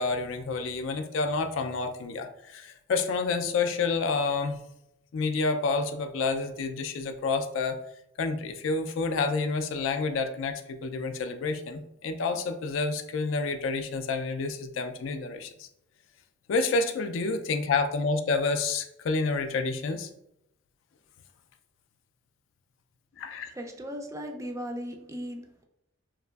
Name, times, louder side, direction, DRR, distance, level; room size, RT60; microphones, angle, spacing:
voice 1, 0.0-4.6 5.1-7.8 8.2-15.7 16.5-20.1 23.2-23.5, left 4 dB, 75° left, 7 dB, 0.3 m, -29 dB
voice 2, 23.5-25.7, equal, 15° right, 3 dB, 0.3 m, -37 dB
2.9 x 2.4 x 2.3 m, 0.81 s
head